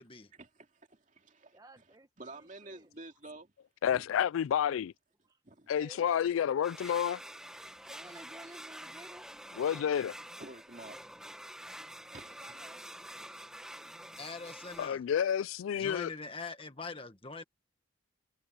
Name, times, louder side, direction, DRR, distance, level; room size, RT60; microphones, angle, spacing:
voice 1, 0.3-3.5 3.9-4.1 5.4-5.7 10.4-11.1 12.1-12.8 13.5-14.2, right 2 dB, 35° right, 2.6 m, -51 dB
voice 2, 1.5-2.9 5.7-6.5 7.9-9.3 11.9-13.7, right 2 dB, 20° right, 1.6 m, -55 dB
voice 3, 3.8-4.9 5.7-7.2 9.5-10.1 14.8-16.1, left 9 dB, 75° left, 0.3 m, -30 dB
sound 1, 6.6-14.9, right 1 dB, 5° right, 1.5 m, -47 dB
voice 4, 14.2-15.0 15.7-17.4, left 4 dB, 25° left, 1.6 m, -43 dB
head